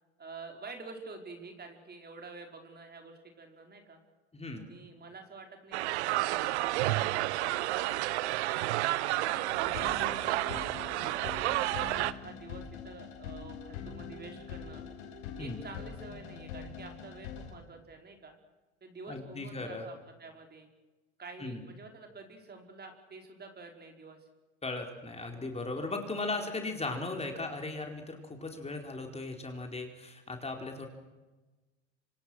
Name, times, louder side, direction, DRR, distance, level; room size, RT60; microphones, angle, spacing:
voice 1, 0.2-4.0 4.6-9.9 10.8-14.8 15.4-18.3 18.8-20.7 21.2-24.3 26.3-26.5, right 3 dB, 30° right, 3 dB, 5.2 m, -49 dB
voice 2, 4.3-4.7 10.4-10.6 15.4-15.6 19.1-19.9 21.4-21.6 24.6-30.9, left 2 dB, 20° left, 3 dB, 4.6 m, -37 dB
sound 1, 5.7-12.1, right 17 dB, 75° right, 1.0 m, -30 dB
sound 2, 9.2-17.5, left 7 dB, 75° left, 6.1 m, -44 dB
26.5 x 26.5 x 6.5 m, 1.2 s
hypercardioid pair, 75°, 34 cm